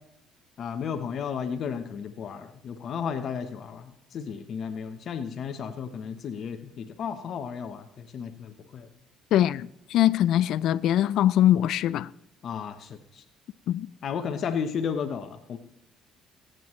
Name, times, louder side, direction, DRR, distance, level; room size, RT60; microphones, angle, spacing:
voice 1, 0.6-8.9 12.4-13.2 14.0-15.6, left 7 dB, 55° left, 1.0 m, -33 dB
voice 2, 9.3-12.1 13.7-13.9, left 12 dB, 70° left, 0.4 m, -22 dB
21.5 x 9.1 x 3.2 m
cardioid pair, 105°, 0 cm